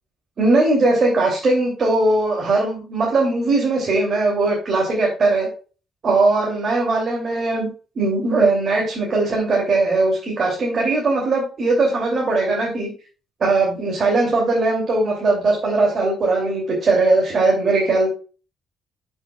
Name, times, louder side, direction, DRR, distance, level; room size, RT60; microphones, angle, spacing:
voice 1, 0.4-5.5 6.0-7.7 8.0-12.9 13.4-18.1, right 2 dB, 50° right, -3 dB, 2.6 m, -19 dB
10.5 x 6.1 x 2.3 m, 0.36 s
cardioid pair, 90°, 0 cm